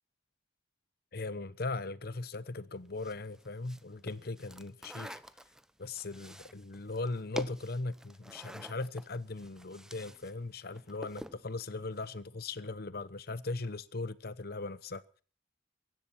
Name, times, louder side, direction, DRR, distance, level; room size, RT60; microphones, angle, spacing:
voice 1, 1.1-5.2 5.8-15.0, left 3 dB, 55° left, 0.9 m, -39 dB
sound 1, 3.0-10.3 10.6-11.4, equal, 5° right, 0.8 m, -47 dB
23.5 x 10.5 x 5.9 m
head